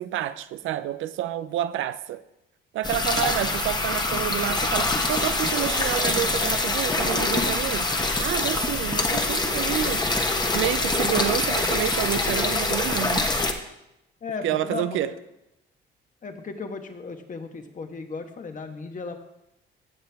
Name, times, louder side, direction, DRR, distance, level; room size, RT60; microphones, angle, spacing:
voice 1, 0.0-2.2 2.7-7.9 8.2-10.0 10.5-13.3 14.4-15.1, right 12 dB, 80° right, 14 dB, 0.5 m, -29 dB
sound 1, 2.8-13.5, left 2 dB, 20° left, 1.1 m, -25 dB
voice 2, 3.2-3.6 14.2-15.1 16.2-19.2, left 4 dB, 40° left, 6 dB, 1.3 m, -36 dB
15.5 x 6.7 x 3.5 m, 0.89 s
cardioid pair, 90°, 20 cm